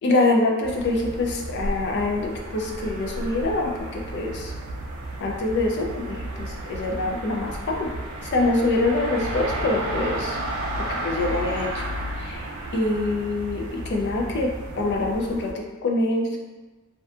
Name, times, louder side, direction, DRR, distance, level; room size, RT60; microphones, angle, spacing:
voice 1, 0.0-4.5 5.2-7.9 8.2-10.4 10.8-12.4 12.7-16.4, left 2 dB, 55° left, 1 dB, 0.4 m, -25 dB
sound 1, 0.6-15.5, right 1 dB, 90° right, 0.4 m, -33 dB
2.6 x 2.2 x 2.4 m, 1.2 s
head